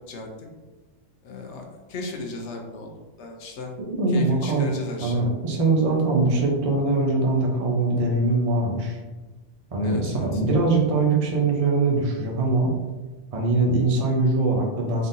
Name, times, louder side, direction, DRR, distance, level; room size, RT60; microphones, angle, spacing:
voice 1, 1.2-2.9 3.2-3.7 4.1-5.2 9.8-10.4, left 3 dB, 75° left, 1 dB, 1.0 m, -35 dB
voice 2, 3.8-4.7 5.0-9.0 9.7-12.7 13.3-15.1, right 3 dB, 35° right, -1 dB, 0.7 m, -22 dB
3.8 x 3.5 x 2.6 m, 1.2 s
omnidirectional pair, 1.2 m